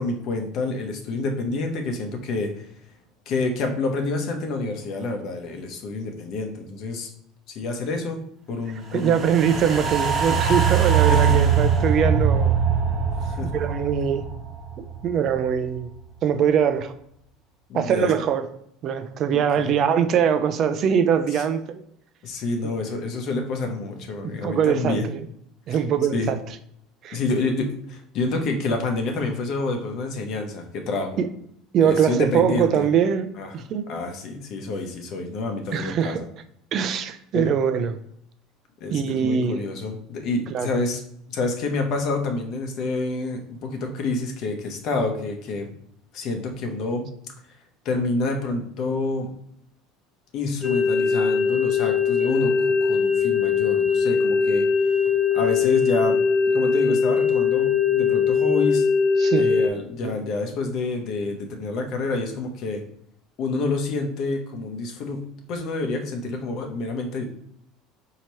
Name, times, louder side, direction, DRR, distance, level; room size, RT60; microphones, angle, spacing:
voice 1, 0.0-2.7 3.3-7.1 7.5-8.2 8.5-9.2 9.5-9.6 11.1-11.4 13.2-13.6 17.7-18.1 19.3-19.7 21.3-21.4 22.2-25.1 25.7-25.8 26.1-26.3 27.1-31.2 31.8-32.8 33.4-33.5 33.9-36.2 37.3-37.5 38.8-41.0 41.3-45.7 46.1-47.1 47.8-49.3 50.3-54.6 55.3-56.2 56.5-58.9 59.3-62.8 63.4-65.2 65.5-67.3, left 3 dB, 60° left, 4 dB, 0.8 m, -28 dB
voice 2, 8.9-12.5 13.5-14.2 14.8-15.9 16.2-16.9 17.7-18.5 18.8-21.8 22.6-22.7 24.2-25.2 25.7-26.4 27.0-27.2 31.2-31.3 31.7-33.9 35.7-36.2 36.7-38.0 38.9-39.6 40.5-40.7 59.2-59.5 60.0-60.2, right 8 dB, 50° right, 10 dB, 0.4 m, -22 dB
sound 1, 9.0-15.4 15.7-15.8, right 7 dB, 30° right, 0.9 m, -22 dB
sound 2, 50.6-59.7, left 5 dB, 20° left, 0.6 m, -21 dB
4.3 x 2.8 x 3.0 m, 0.71 s
supercardioid pair, 100°, 0 cm